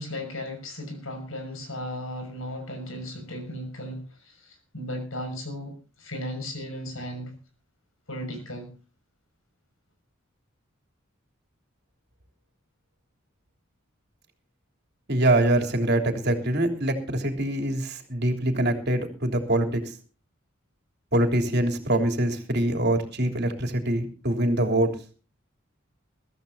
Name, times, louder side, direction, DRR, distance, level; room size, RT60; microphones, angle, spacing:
voice 1, 0.0-7.3 8.1-8.7, equal, 80° left, 6 dB, 6.4 m, -36 dB
voice 2, 15.1-19.8 21.1-24.9, right 1 dB, 55° right, 4 dB, 3.3 m, -24 dB
22.5 x 15.0 x 2.8 m, 0.37 s
head